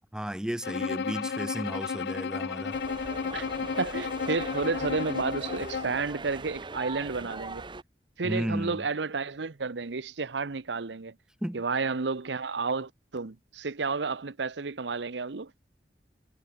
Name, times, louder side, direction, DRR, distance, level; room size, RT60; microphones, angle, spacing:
voice 1, 0.1-2.8 8.2-8.8 11.4-11.6, equal, 5° right, 0.4 m, -33 dB
Bowed string instrument, 0.6-6.0, left 5 dB, 65° left, 0.4 m, -33 dB
sound 1, 2.7-7.8, right 3 dB, 30° right, 1.0 m, -41 dB
voice 2, 3.8-7.7 8.2-11.1 11.5-15.5, right 4 dB, 90° right, 0.9 m, -31 dB
head